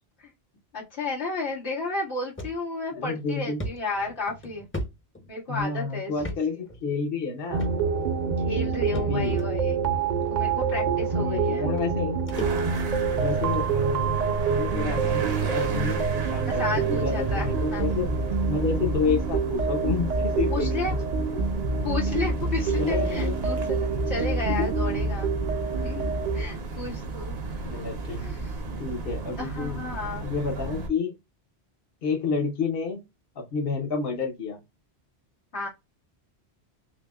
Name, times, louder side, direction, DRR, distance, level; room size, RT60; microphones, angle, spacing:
voice 1, 0.7-4.7 5.3-6.1 8.5-9.7 10.3-11.7 16.5-17.8 20.5-21.0 21.8-25.3 25.8-27.4 28.2-28.5 29.4-30.2 35.5-35.7, left 3 dB, 90° left, 1.9 m, -32 dB
sound 1, 2.4-2.6 3.0-3.1 3.6-5.6 6.2-6.4 6.7-6.8 7.6-8.0 8.9-9.5 10.4-10.5 11.4-11.5 11.8-13.0 13.4-13.7 14.5-14.6 15.0-15.1 15.4-15.5 16.0-16.2, equal, 15° left, 0.5 m, -36 dB
voice 2, 2.9-3.6 5.5-7.7 8.9-9.4 10.8-12.2 13.1-14.2 14.5-18.2 18.5-21.0 21.3-21.5 22.8-23.4 24.5-24.7 27.7-28.2 28.8-29.8 30.2-31.1 32.0-33.0 33.4-34.6, left 5 dB, 65° left, 1.0 m, -30 dB
sound 2, 7.5-26.4, right 5 dB, 50° right, 0.6 m, -27 dB
sound 3, 12.3-30.9, right 3 dB, 70° right, 1.0 m, -34 dB
6.0 x 2.1 x 2.3 m
omnidirectional pair, 1.1 m